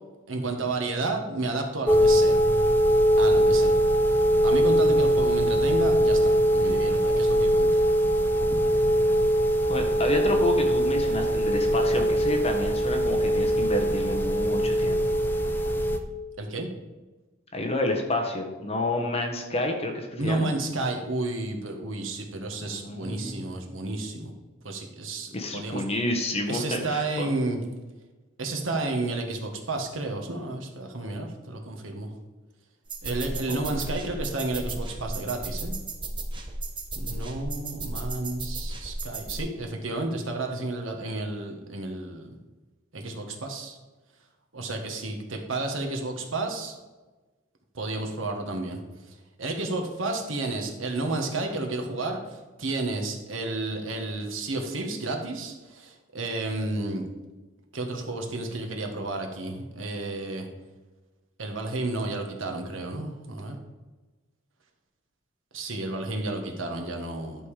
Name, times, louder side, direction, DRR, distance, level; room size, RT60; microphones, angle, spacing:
voice 1, 0.3-2.4 3.2-3.8 4.4-7.8 16.4-16.7 20.2-24.3 24.6-25.8 26.5-27.6 28.4-32.1 33.0-35.8 36.9-42.3 42.9-43.8 44.5-46.8 47.7-48.8 49.1-57.0 57.7-60.4 61.4-63.6 65.5-67.5, right 2 dB, 75° right, 3 dB, 1.5 m, -31 dB
sound 1, 1.9-16.0, equal, 10° left, 0.7 m, -22 dB
voice 2, 9.7-15.0 17.5-20.5 22.6-23.5 25.3-27.3 33.5-33.7, left 1 dB, 30° left, 2 dB, 1.4 m, -29 dB
sound 2, 32.9-39.4, right 2 dB, 25° right, 1.0 m, -34 dB
11.0 x 5.4 x 5.0 m, 1.2 s
head